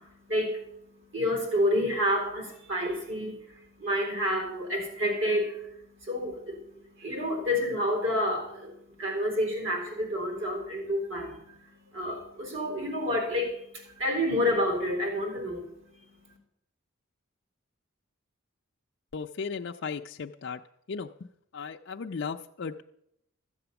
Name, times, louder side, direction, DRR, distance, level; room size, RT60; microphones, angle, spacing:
voice 1, 0.0-16.4, equal, 60° right, 2 dB, 4.1 m, -30 dB
voice 2, 19.1-20.6 20.9-21.1 21.5-22.8, left 5 dB, 55° left, 2 dB, 0.4 m, -36 dB
13.5 x 7.8 x 7.0 m, 0.77 s
head